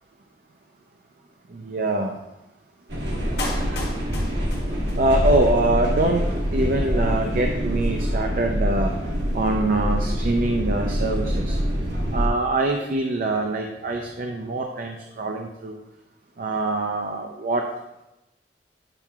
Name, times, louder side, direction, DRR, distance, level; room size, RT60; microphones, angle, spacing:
voice 1, 1.5-2.2 5.0-6.3 6.5-8.9 9.3-11.6 12.1-15.8 16.4-17.6, right 2 dB, 50° right, 3 dB, 0.5 m, -24 dB
sound 1, 2.9-12.3, equal, 80° right, 1.3 m, -25 dB
Clapping, 3.4-5.4 5.6-5.7, left 2 dB, 60° left, 1.4 m, -34 dB
8.8 x 5.6 x 2.3 m, 0.95 s
head